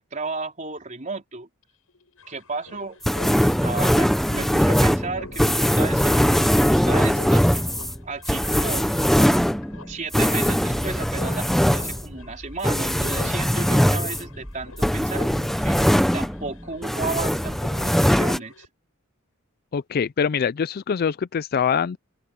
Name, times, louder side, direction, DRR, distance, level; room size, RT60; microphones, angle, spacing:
voice 1, 0.0-1.5 2.3-3.0 3.4-7.4 8.0-8.9 9.9-18.7, right 3 dB, 35° right, 4.2 m, -34 dB
sound 1, 1.6-1.7 1.9-18.7, left 3 dB, 75° left, 7.1 m, -46 dB
sound 2, 3.0-16.5 16.8-18.4, equal, ahead, 0.7 m, -21 dB
voice 2, 19.7-22.0, left 7 dB, 45° left, 0.4 m, -24 dB
open air
head